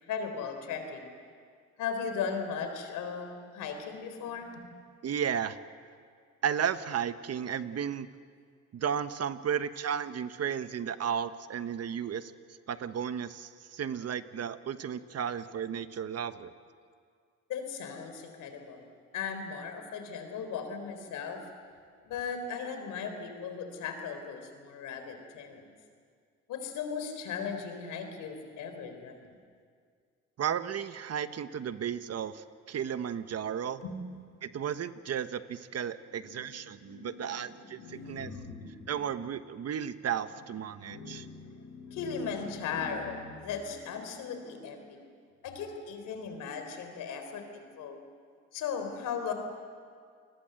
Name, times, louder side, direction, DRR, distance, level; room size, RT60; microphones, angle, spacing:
voice 1, 0.1-1.1 1.8-4.7 17.5-18.9 19.1-21.4 22.0-25.7 26.5-29.3 33.8-34.1 36.3-38.9 40.7-45.1 45.4-48.0 48.5-49.3, left 6 dB, 90° left, 6 dB, 3.9 m, -38 dB
voice 2, 5.0-5.6 6.4-8.1 8.7-12.3 12.7-16.5 30.4-33.8 34.4-38.3 38.9-41.3, right 8 dB, 55° right, 11 dB, 1.2 m, -34 dB
28.5 x 21.0 x 7.9 m, 2.1 s
cardioid pair, 90°, 30 cm